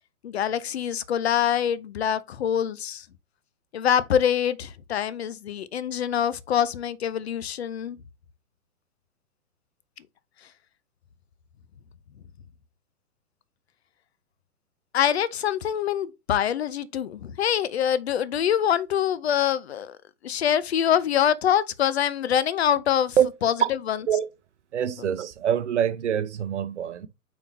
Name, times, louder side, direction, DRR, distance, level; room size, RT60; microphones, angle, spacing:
voice 1, 0.2-3.1 3.7-8.0 14.9-20.0 20.2-24.0, left 9 dB, 45° left, 0.7 m, -25 dB
voice 2, 24.7-27.1, right 9 dB, 50° right, 0.8 m, -24 dB
5.0 x 4.7 x 4.2 m
figure-of-eight pair, 120°, 44 cm